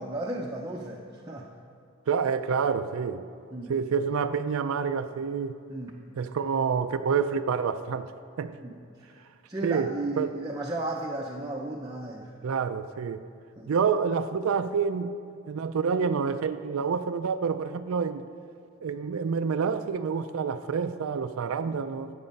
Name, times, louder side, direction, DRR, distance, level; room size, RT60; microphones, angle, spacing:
voice 1, 0.0-1.5 3.5-3.7 5.7-6.0 8.6-8.8 9.5-12.3 13.6-13.7 21.6-21.8, right 2 dB, 20° right, -2 dB, 0.6 m, -34 dB
voice 2, 2.1-3.3 3.7-5.6 6.2-8.1 8.4-8.6 9.6-10.3 12.4-13.3 13.7-15.1 15.5-18.3 18.8-22.1, right 6 dB, 85° right, 10 dB, 0.4 m, -28 dB
12.5 x 8.1 x 5.3 m, 2.5 s
head